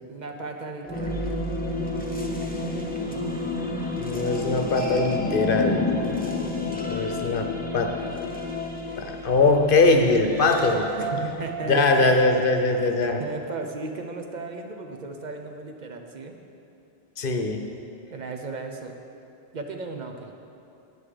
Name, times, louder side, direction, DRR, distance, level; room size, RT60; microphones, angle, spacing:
voice 1, 0.1-1.3 11.0-12.4 13.2-16.3 18.1-19.0 19.5-20.3, right 3 dB, 50° right, 4 dB, 0.8 m, -35 dB
sound 1, 0.8-12.7, left 2 dB, 10° left, 0.8 m, -30 dB
voice 2, 4.0-5.9 6.9-7.5 7.7-7.9 9.0-10.9 11.7-13.2 17.2-17.6, left 3 dB, 60° left, 4 dB, 0.9 m, -21 dB
9.4 x 7.7 x 5.0 m, 2.7 s
omnidirectional pair, 1.0 m